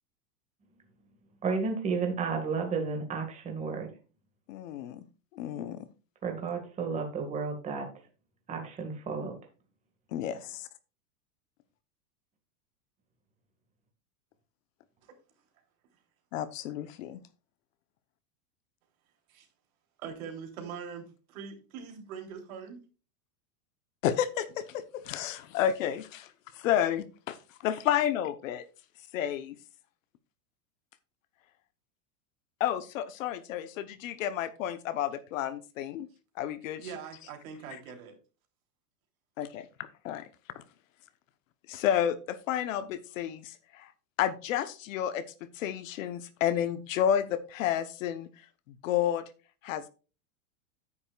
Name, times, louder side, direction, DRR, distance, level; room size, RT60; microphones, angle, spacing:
voice 1, 1.4-3.9 6.2-7.9 8.5-9.3, right 5 dB, 15° right, 1.8 m, -32 dB
voice 2, 4.5-5.0 5.3-5.9 10.1-10.4 16.3-17.2 24.0-26.3 26.6-27.4 27.6-28.6 29.1-29.6 32.6-36.1 36.4-36.9 39.4-39.7 40.0-40.2 40.5-40.6 41.7-43.9 44.2-48.3 48.8-49.2 49.6-49.9, left 10 dB, 55° left, 1.0 m, -31 dB
voice 3, 20.0-22.8 36.8-38.1, right 6 dB, 65° right, 3.4 m, -42 dB
9.8 x 9.7 x 2.4 m
supercardioid pair, 170°, 46 cm